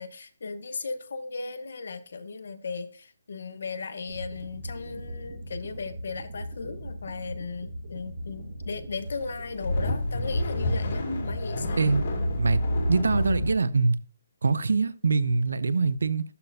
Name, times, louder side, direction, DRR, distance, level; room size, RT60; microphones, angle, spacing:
voice 1, 0.0-11.8, left 4 dB, 65° left, 0.9 m, -36 dB
sound 1, 4.1-11.1, equal, 45° right, 1.4 m, -40 dB
sound 2, 9.3-13.6, left 1 dB, 45° left, 2.5 m, -28 dB
voice 2, 12.9-14.0 14.4-16.2, right 4 dB, 85° right, 0.5 m, -24 dB
12.5 x 4.2 x 2.6 m
hypercardioid pair, 170°, 0 cm